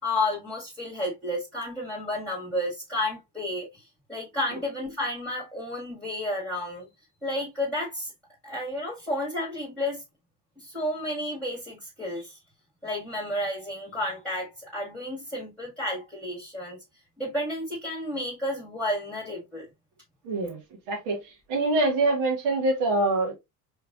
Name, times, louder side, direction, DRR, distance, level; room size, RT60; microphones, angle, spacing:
voice 1, 0.0-6.9 7.2-8.1 8.4-10.0 10.6-12.4 12.8-16.8 17.2-19.7, left 1 dB, ahead, 1.7 m, -31 dB
voice 2, 20.3-20.6 20.9-21.2 21.5-23.3, right 2 dB, 70° right, 1.8 m, -24 dB
4.6 x 3.5 x 2.4 m
figure-of-eight pair, 60°, 50 cm